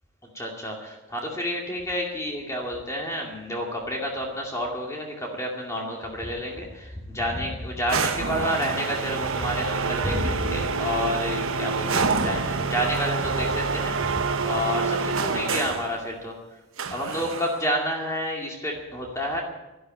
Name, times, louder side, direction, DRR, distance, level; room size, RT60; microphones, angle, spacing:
voice 1, 0.3-16.4 16.9-19.4, equal, 15° left, -1 dB, 2.3 m, -30 dB
sound 1, 7.9-15.9 16.8-17.7, right 4 dB, 75° right, 1.1 m, -27 dB
12.5 x 11.5 x 9.0 m, 1.0 s
head